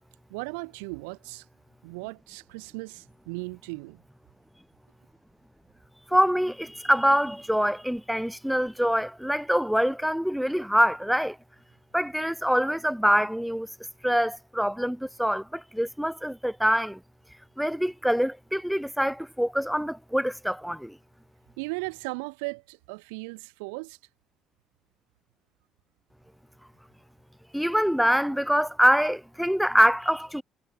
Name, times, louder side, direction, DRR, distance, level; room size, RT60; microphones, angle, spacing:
voice 1, 0.3-1.5 1.8-4.0 21.6-24.0, right 32 dB, 80° right, 5.6 m, -37 dB
voice 2, 6.1-11.4 11.9-13.7 14.0-17.0 17.6-21.0 27.5-30.4, equal, ahead, 3.5 m, -25 dB
hypercardioid pair, 50°, 0 cm